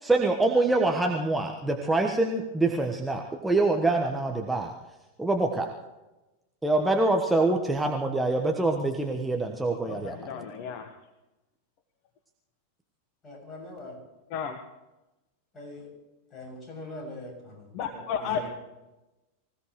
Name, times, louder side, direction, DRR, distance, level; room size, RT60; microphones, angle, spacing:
voice 1, 0.0-4.7 5.2-5.7 6.6-10.1, right 2 dB, 5° right, 1 dB, 1.3 m, -25 dB
voice 2, 9.8-10.9 14.3-14.6 17.7-18.4, left 7 dB, 45° left, 7 dB, 1.1 m, -33 dB
voice 3, 13.2-14.0 15.5-15.9 16.3-17.7 17.9-18.5, left 2 dB, 25° left, -1 dB, 7.1 m, -42 dB
25.0 x 16.5 x 3.2 m, 1.0 s
figure-of-eight pair, 90°, 0 cm